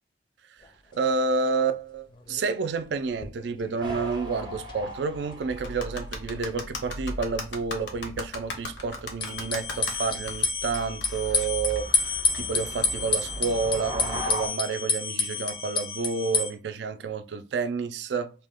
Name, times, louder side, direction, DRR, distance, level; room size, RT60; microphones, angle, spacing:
sound 1, 0.6-0.7 1.0-1.1 1.4-1.5 2.1-2.5 2.8-4.8 5.0-5.1 9.2-16.5, left 5 dB, 30° left, 0.5 m, -30 dB
voice 1, 0.9-18.3, right 4 dB, 75° right, 0.4 m, -29 dB
sound 2, 3.8-14.5, equal, 25° right, 0.6 m, -39 dB
sound 3, 5.6-13.1, left 3 dB, 80° left, 0.8 m, -38 dB
2.7 x 2.2 x 3.4 m
head